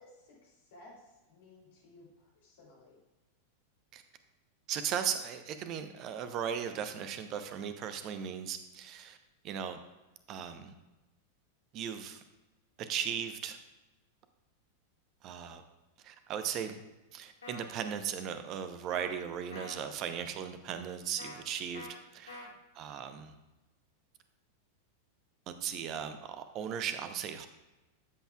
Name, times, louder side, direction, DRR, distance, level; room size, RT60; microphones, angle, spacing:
voice 1, 0.0-2.9 22.4-22.6, left 2 dB, 55° left, -3 dB, 3.2 m, -57 dB
voice 2, 4.7-9.2 9.4-9.8 10.3-10.7 11.7-12.2 12.8-13.6 15.2-15.6 16.0-16.8 17.1-21.9 22.1-22.5 22.7-23.3 25.5-27.5, right 8 dB, 35° right, 9 dB, 0.8 m, -37 dB
sound 1, 17.4-17.7 18.9-19.1 19.5-19.8 21.2-21.4 21.7-21.9 22.3-22.5, left 2 dB, 75° left, 1.7 m, -46 dB
12.5 x 8.0 x 2.4 m, 1.1 s
figure-of-eight pair, 90°, 0 cm